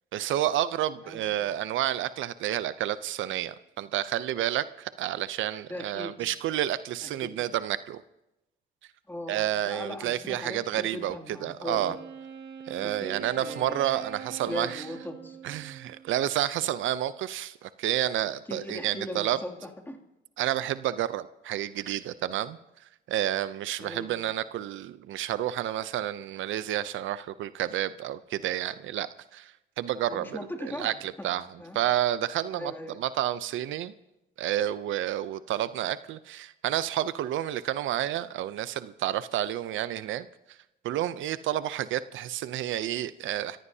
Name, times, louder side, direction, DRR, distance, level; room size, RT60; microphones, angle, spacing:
voice 1, 0.1-8.0 9.3-11.2 11.4-11.9 12.7-14.8 15.4-19.4 20.4-22.6 23.1-31.4 31.7-33.9 34.4-40.3 40.8-43.6, right 12 dB, 75° right, 15 dB, 0.5 m, -30 dB
voice 2, 1.0-1.5 5.7-6.3 7.0-7.4 9.1-12.0 12.8-13.9 14.4-15.4 18.5-20.0 23.8-24.1 30.1-31.3 31.6-31.8 32.5-33.0, left 1 dB, 10° left, 1 dB, 2.6 m, -39 dB
Wind instrument woodwind instrument, 11.7-16.2, right 7 dB, 60° right, 2.9 m, -43 dB
27.0 x 15.5 x 2.8 m, 0.92 s
cardioid pair, 90°, 20 cm